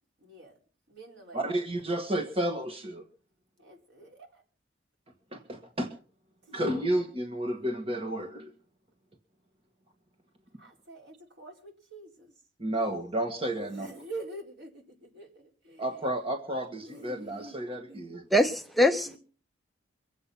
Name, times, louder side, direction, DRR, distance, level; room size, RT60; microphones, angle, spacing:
voice 1, 0.2-0.6 0.9-1.4 3.6-4.4 10.6-12.3 13.6-16.1 16.8-17.6 17.9-18.1 18.4-18.5 19.1-19.2, right 2 dB, 65° right, 4.4 m, -46 dB
voice 2, 1.3-3.0 5.3-5.9 6.5-8.5 12.6-13.9 15.8-18.2, right 1 dB, 30° right, 1.5 m, -31 dB
voice 3, 18.3-19.2, left 1 dB, ahead, 0.7 m, -23 dB
23.5 x 8.5 x 5.9 m
head